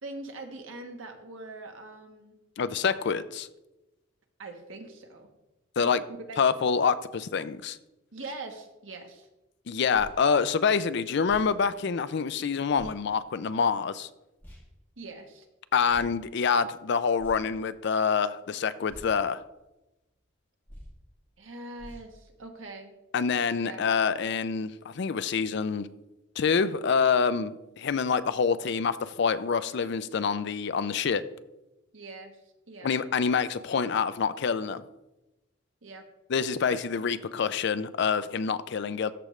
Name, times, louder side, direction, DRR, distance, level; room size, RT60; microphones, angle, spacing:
voice 1, 0.0-2.4 4.4-5.3 5.8-6.4 8.1-9.3 15.0-15.5 21.4-22.9 23.6-23.8 31.9-32.9 35.8-36.1 36.7-36.8, right 2 dB, 90° right, 1.2 m, -42 dB
voice 2, 2.6-3.5 5.8-6.0 6.4-7.8 9.7-14.1 15.7-19.4 23.1-25.9 26.4-31.2 32.8-34.8 36.3-39.1, left 6 dB, 60° left, 0.4 m, -26 dB
sound 1, 9.9-10.2 11.2-11.5 12.7-13.0 14.4-14.7 15.9-16.1 17.2-17.6 18.9-19.1 20.7-21.0 21.8-22.1, equal, 10° left, 2.3 m, -47 dB
13.5 x 5.0 x 3.2 m
head